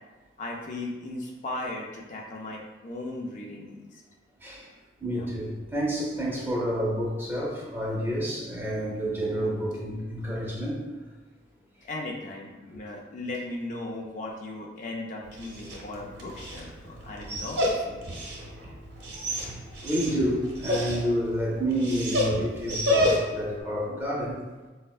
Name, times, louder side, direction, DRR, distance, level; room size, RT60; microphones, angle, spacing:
voice 1, 0.4-4.0 5.1-5.3 11.8-18.0, left 2 dB, 40° left, -1 dB, 0.3 m, -37 dB
voice 2, 5.0-10.8 12.7-12.8 19.3-19.4 19.8-24.4, equal, 10° right, -5 dB, 0.6 m, -29 dB
Dog, 15.2-23.5, equal, 60° right, 0.7 m, -30 dB
4.3 x 2.1 x 2.3 m, 1.3 s
head